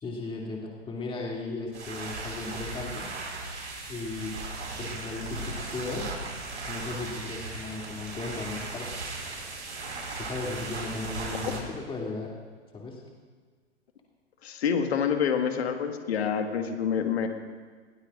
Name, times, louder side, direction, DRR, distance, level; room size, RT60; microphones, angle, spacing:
voice 1, 0.0-3.1 3.9-4.3 4.8-6.1 6.7-9.0 10.2-12.3 12.7-13.0, left 3 dB, 15° left, -2 dB, 2.7 m, -36 dB
sound 1, 1.7-11.6, right 3 dB, 75° right, 5.0 m, -37 dB
voice 2, 14.4-17.3, left 7 dB, 60° left, 5 dB, 1.7 m, -27 dB
20.5 x 17.5 x 2.5 m, 1.5 s
figure-of-eight pair, 110°, 35 cm